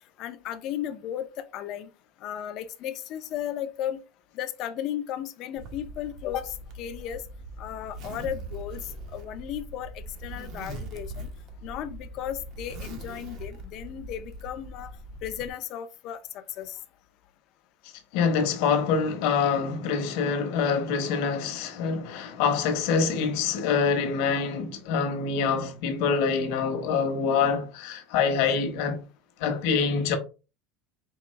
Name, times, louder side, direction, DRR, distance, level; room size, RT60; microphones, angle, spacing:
voice 1, 0.2-1.9 2.2-4.0 4.3-7.2 7.6-11.3 11.6-14.9 15.2-16.8, left 10 dB, 40° left, 0.5 m, -35 dB
Zipper (clothing), 5.6-15.5, right 1 dB, 45° right, 0.8 m, -41 dB
voice 2, 18.1-29.0 29.4-30.2, left 5 dB, 60° left, 1.0 m, -25 dB
4.7 x 3.0 x 3.1 m
cardioid pair, 170°, 0 cm